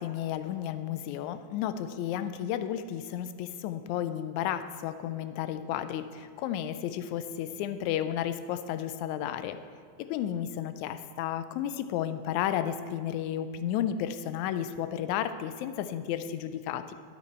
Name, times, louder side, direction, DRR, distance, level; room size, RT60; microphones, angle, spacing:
voice 1, 0.0-9.6 10.0-16.9, left 10 dB, 80° left, 11 dB, 1.8 m, -32 dB
12.5 x 8.5 x 4.3 m, 2.1 s
omnidirectional pair, 3.6 m